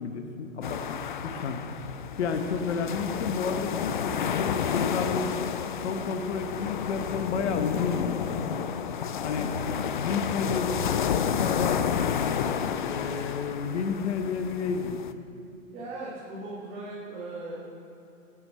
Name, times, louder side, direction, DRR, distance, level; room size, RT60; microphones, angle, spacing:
voice 1, 0.0-1.6 2.2-5.3 5.8-8.4 9.2-9.6 9.9-11.9 12.8-15.0, left 5 dB, 55° left, 6 dB, 1.4 m, -31 dB
sound 1, 0.6-15.1, left 8 dB, 40° left, 0.4 m, -30 dB
voice 2, 15.7-17.6, right 2 dB, 20° right, -8 dB, 2.0 m, -38 dB
12.5 x 8.9 x 4.4 m, 2.9 s
hypercardioid pair, 145°, 41 cm